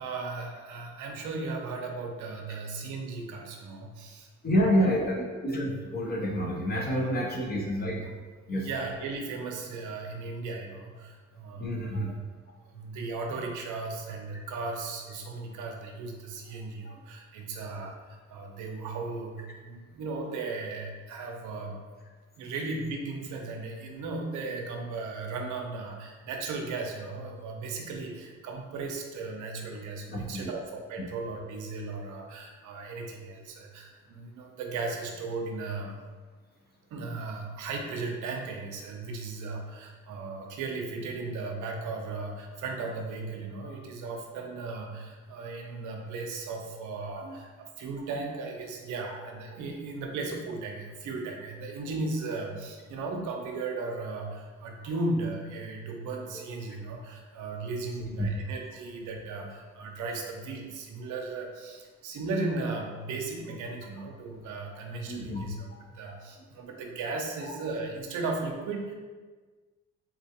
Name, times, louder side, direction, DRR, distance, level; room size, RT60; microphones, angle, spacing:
voice 1, 0.0-4.9 6.8-7.2 8.5-12.1 12.7-21.8 22.4-36.0 36.9-65.6 65.9-68.9, right 3 dB, 80° right, 1 dB, 0.6 m, -36 dB
voice 2, 4.4-8.1 8.5-8.7 11.6-12.1 30.1-30.5 47.2-47.3 49.1-49.2 58.1-58.3 65.1-65.4 67.5-67.6, equal, 30° left, 0 dB, 0.7 m, -28 dB
3.8 x 2.4 x 2.8 m, 1.4 s
cardioid pair, 80°, 30 cm